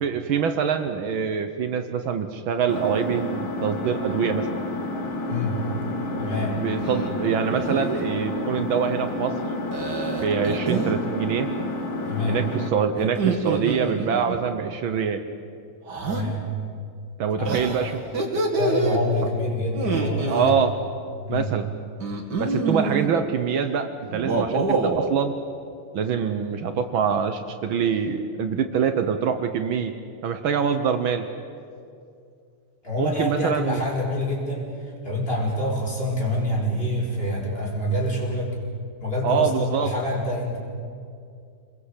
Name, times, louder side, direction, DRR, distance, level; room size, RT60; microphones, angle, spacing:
voice 1, 0.0-4.5 6.6-9.4 10.2-11.5 12.3-15.2 17.2-18.4 20.3-20.7 21.3-21.7 22.4-25.3 25.9-29.9 30.2-31.3 33.0-33.8 39.2-39.9, right 7 dB, 70° right, 8 dB, 1.8 m, -25 dB
Engine, 2.7-12.7, left 2 dB, 70° left, 2.7 m, -30 dB
voice 2, 5.2-5.6 6.2-6.6 12.1-12.4 16.1-16.5 17.4-17.5 17.8-17.9 18.6-20.6 21.2-21.5 32.8-38.5 39.0-40.6, left 1 dB, 25° left, -3 dB, 5.5 m, -26 dB
sound 1, 6.8-7.1 7.5-8.0 9.7-11.0 13.0-14.4 15.9-16.3 17.5-19.0 19.7-20.5 22.0-23.1 24.1-25.1, right 3 dB, 50° right, 2.9 m, -26 dB
27.5 x 21.0 x 8.2 m, 2.4 s
omnidirectional pair, 2.4 m